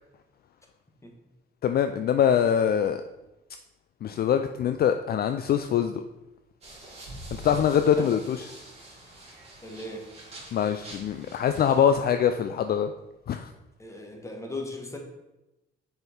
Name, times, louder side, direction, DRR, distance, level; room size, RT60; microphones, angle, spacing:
voice 1, 1.6-3.0 4.0-6.0 7.4-8.5 10.5-12.9 13.3-13.5, left 8 dB, 50° left, 8 dB, 0.4 m, -23 dB
sound 1, 6.6-11.9, right 1 dB, 30° right, 2.5 m, -45 dB
voice 2, 9.6-10.1 13.8-15.0, left 2 dB, 15° left, 2 dB, 1.4 m, -37 dB
6.4 x 4.5 x 4.4 m, 0.98 s
cardioid pair, 90°, 20 cm